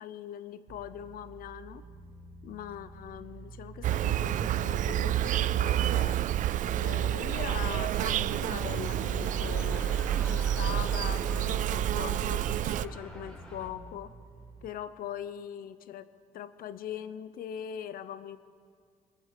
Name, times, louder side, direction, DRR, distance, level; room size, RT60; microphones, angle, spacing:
voice 1, 0.0-1.8 2.4-6.2 6.6-9.8 10.2-14.1 14.6-18.4, left 10 dB, 80° left, 13 dB, 0.7 m, -41 dB
sound 1, 0.7-14.7, right 4 dB, 75° right, 2.5 m, -49 dB
Insect, 3.8-12.8, right 11 dB, 60° right, 0.4 m, -29 dB
sound 2, 4.0-13.7, equal, 5° left, 1.8 m, -46 dB
23.5 x 8.5 x 6.7 m, 2.1 s
cardioid pair, 135°, 15 cm